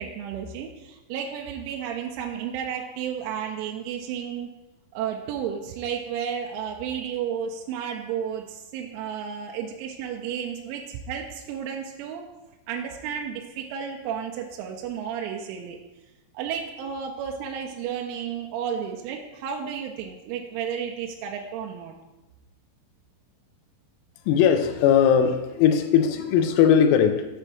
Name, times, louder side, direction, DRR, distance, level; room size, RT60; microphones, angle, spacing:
voice 1, 0.0-4.5 4.9-12.3 12.7-15.8 16.3-22.0, right 8 dB, 85° right, 0 dB, 2.8 m, -32 dB
voice 2, 24.3-27.3, left 8 dB, 90° left, 7 dB, 3.4 m, -19 dB
8.1 x 3.3 x 6.1 m, 1.0 s
omnidirectional pair, 6.0 m